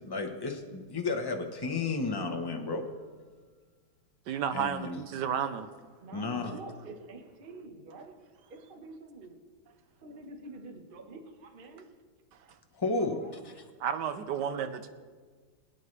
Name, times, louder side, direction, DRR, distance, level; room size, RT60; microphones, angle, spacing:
voice 1, 0.0-2.8 4.5-5.0 6.1-6.6 12.8-13.2, left 3 dB, 25° left, 3 dB, 0.5 m, -32 dB
voice 2, 4.3-5.7 13.8-14.9, right 8 dB, 70° right, 10 dB, 1.2 m, -32 dB
voice 3, 6.0-8.1 8.5-9.4 10.0-11.8 13.0-13.4 14.3-14.4, right 2 dB, 30° right, 4 dB, 1.1 m, -47 dB
22.5 x 9.2 x 3.3 m, 1.5 s
omnidirectional pair, 2.1 m